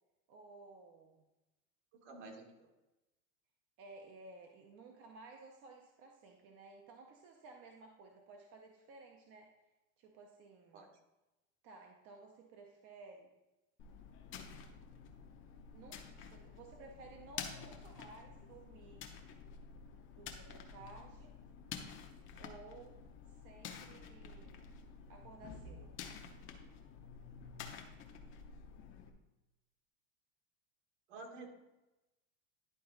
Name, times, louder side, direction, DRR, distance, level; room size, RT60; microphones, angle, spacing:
voice 1, 0.3-1.3 3.8-9.5 10.0-10.8 11.6-13.3 15.7-19.1 20.1-21.3 22.4-23.0 23.4-24.7 25.1-25.9, right 3 dB, 35° right, 2 dB, 0.7 m, -56 dB
voice 2, 1.9-2.7 10.7-10.9 28.2-28.3 31.1-31.6, right 3 dB, 60° right, 3 dB, 1.7 m, -51 dB
sound 1, 13.8-29.1, left 6 dB, 30° left, 0.8 m, -50 dB
11.0 x 3.8 x 3.9 m, 1.0 s
supercardioid pair, 145°, 41 cm